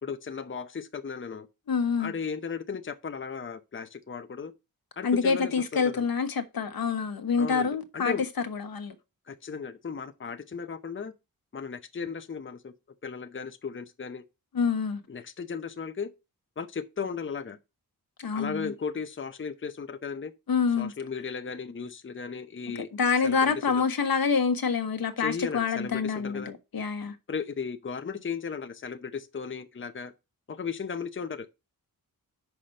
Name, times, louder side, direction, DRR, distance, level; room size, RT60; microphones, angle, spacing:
voice 1, 0.0-1.5 2.0-4.5 5.0-6.0 7.4-7.7 7.9-8.2 9.3-11.1 11.5-12.7 13.0-14.2 15.1-16.1 16.6-17.6 18.3-20.3 20.8-22.9 23.2-23.8 25.2-26.5 27.3-30.1 30.5-31.5, left 5 dB, 35° left, 0.8 m, -36 dB
voice 2, 1.7-2.1 5.0-8.1 8.5-8.9 14.5-15.0 18.2-18.7 20.5-20.9 22.7-27.1, left 5 dB, 75° left, 1.2 m, -27 dB
5.9 x 4.9 x 6.5 m
cardioid pair, 70°, 36 cm